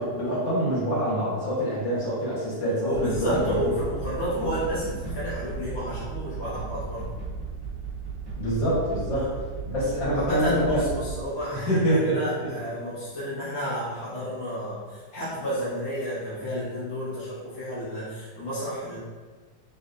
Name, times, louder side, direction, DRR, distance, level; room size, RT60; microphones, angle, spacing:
voice 1, 0.0-3.7 8.4-9.3 9.7-10.8 11.5-12.5, equal, 90° left, -10 dB, 2.2 m, -26 dB
voice 2, 2.8-7.1 9.1-9.3 10.1-19.0, equal, 45° left, -11 dB, 1.0 m, -31 dB
sound 1, 2.9-11.2, right 4 dB, 25° right, 0.5 m, -35 dB
4.1 x 3.4 x 2.5 m, 1.4 s
omnidirectional pair, 1.9 m